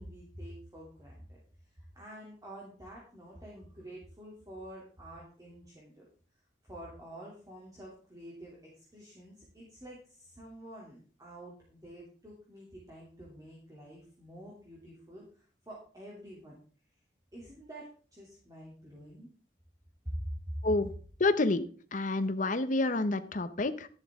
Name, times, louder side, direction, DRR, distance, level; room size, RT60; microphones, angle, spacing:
voice 1, 0.0-6.1 6.6-16.6 17.3-19.3 20.0-20.7, equal, 20° right, -4 dB, 2.9 m, -47 dB
voice 2, 21.2-21.6 21.9-23.9, left 2 dB, 50° left, 11 dB, 0.8 m, -28 dB
12.0 x 10.5 x 3.7 m, 0.42 s
head